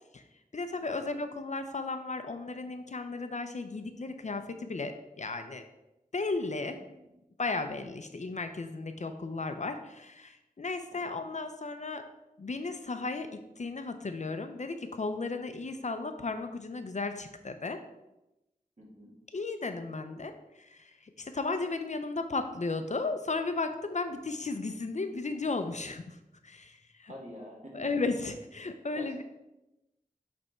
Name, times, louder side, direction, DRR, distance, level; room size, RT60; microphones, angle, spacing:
voice 1, 0.5-5.7 6.1-6.8 7.4-12.0 12.4-17.8 19.3-26.2 26.4-27.1 27.7-29.2, left 3 dB, 50° left, 8 dB, 0.5 m, -35 dB
voice 2, 6.6-7.1 10.9-11.1 18.8-19.1 27.0-27.8 28.9-29.2, equal, 50° right, -4 dB, 2.2 m, -48 dB
7.9 x 3.5 x 4.3 m, 0.95 s
wide cardioid pair, 70°, 15 cm